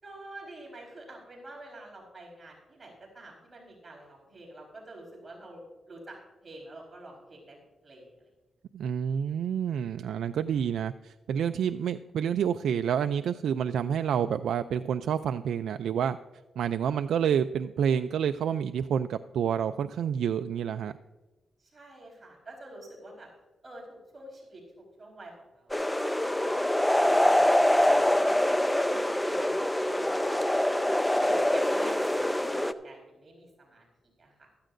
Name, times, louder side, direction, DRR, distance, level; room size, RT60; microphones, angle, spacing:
voice 1, 0.0-6.2 6.4-7.6 7.8-8.3 21.6-23.3 23.6-26.5 26.9-28.3 28.8-30.1 31.2-34.5, right 1 dB, 35° right, -1 dB, 4.3 m, -47 dB
voice 2, 8.7-16.2 16.6-20.9, right 8 dB, 90° right, 9 dB, 0.3 m, -28 dB
sound 1, 25.7-32.7, left 1 dB, 10° left, 0.6 m, -25 dB
15.5 x 13.5 x 2.6 m, 1.2 s
cardioid pair, 95°, 0 cm